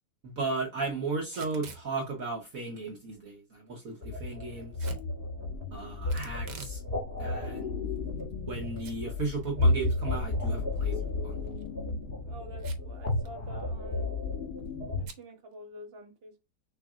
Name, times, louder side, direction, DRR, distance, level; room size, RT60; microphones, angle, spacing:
voice 1, 0.2-4.9 5.7-6.8 7.2-7.8 8.5-10.9 11.2-11.4, right 3 dB, 55° right, 1.5 m, -35 dB
Packing tape duct tape / Tearing, 1.2-1.9 4.8-5.1 6.1-6.8 7.2-7.3 8.0-8.6 8.8-8.9 9.3-9.4 11.4-11.7 12.6-13.0 13.3-13.4 13.6-13.9 15.0-15.2, right 5 dB, 85° right, 1.6 m, -46 dB
Dark Dream Ambience, 4.0-15.1, left 2 dB, 35° left, 1.5 m, -32 dB
voice 2, 12.3-14.1 15.0-16.4, right 1 dB, 35° right, 1.5 m, -47 dB
6.5 x 3.3 x 2.4 m
omnidirectional pair, 1.8 m